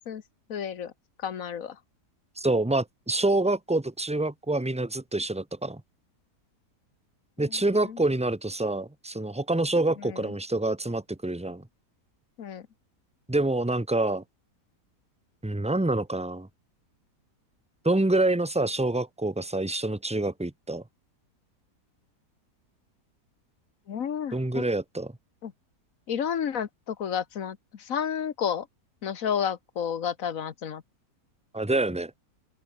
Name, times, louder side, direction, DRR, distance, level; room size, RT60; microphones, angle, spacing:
voice 1, 0.5-0.9 1.2-1.8 7.4-8.0 10.0-10.3 12.4-12.7 23.9-24.6 25.4-25.5 26.1-28.7 29.0-30.8, left 8 dB, 55° left, 1.5 m, -31 dB
voice 2, 2.4-5.8 7.4-11.6 13.3-14.2 15.4-16.5 17.8-20.8 24.3-25.1 31.5-32.1, right 2 dB, 5° right, 0.6 m, -26 dB
open air
omnidirectional pair, 1.8 m